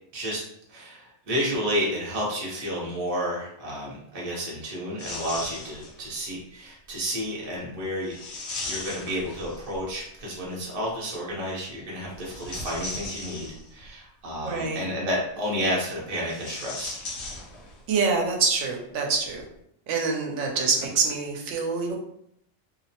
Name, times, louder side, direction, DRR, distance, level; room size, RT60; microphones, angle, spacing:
voice 1, 0.7-17.0, equal, 35° right, -4 dB, 0.7 m, -31 dB
sound 1, 5.0-6.1 8.1-9.9 12.1-13.9 16.2-17.9 18.2-18.3 19.3-19.4, left 2 dB, 65° left, 0.8 m, -37 dB
voice 2, 14.4-14.8 17.9-19.4 19.9-22.0, right 4 dB, 70° right, 1 dB, 0.9 m, -25 dB
2.7 x 2.1 x 2.7 m, 0.74 s
omnidirectional pair, 1.3 m